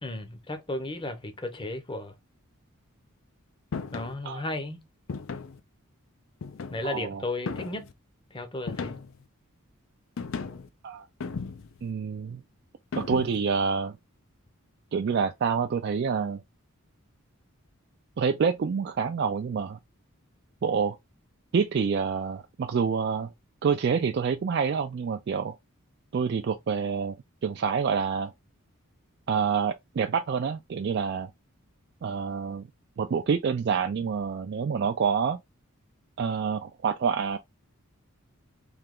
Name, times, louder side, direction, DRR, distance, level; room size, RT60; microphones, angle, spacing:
voice 1, 0.0-2.1 3.9-4.9 6.7-7.9 8.3-9.0, left 2 dB, 20° left, 0.7 m, -34 dB
sound 1, 3.7-4.1 5.1-5.6 6.4-7.0 7.5-7.9 8.7-9.2 10.2-10.7 11.2-11.8 12.9-13.5, left 5 dB, 65° left, 0.5 m, -35 dB
voice 2, 6.8-7.2 10.8-11.1 11.8-12.4 12.9-14.0 14.9-16.4 18.2-19.8 20.6-21.0 21.5-23.3 23.6-25.6 26.1-27.1 27.4-28.3 29.3-31.3 32.0-32.7 33.0-35.4 36.2-37.4, right 6 dB, 50° right, 0.3 m, -27 dB
3.3 x 2.8 x 3.7 m
head